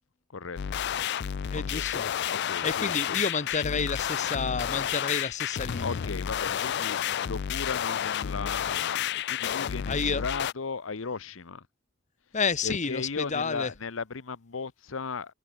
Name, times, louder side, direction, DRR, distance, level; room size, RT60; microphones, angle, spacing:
voice 1, 0.3-0.8 1.5-1.9 2.3-3.2 5.7-11.7 12.6-15.3, left 5 dB, 80° left, 0.9 m, -36 dB
sound 1, 0.6-10.5, left 9 dB, 55° left, 0.4 m, -31 dB
voice 2, 1.5-2.1 2.6-6.0 9.9-10.2 12.3-13.7, left 5 dB, 35° left, 1.0 m, -30 dB
head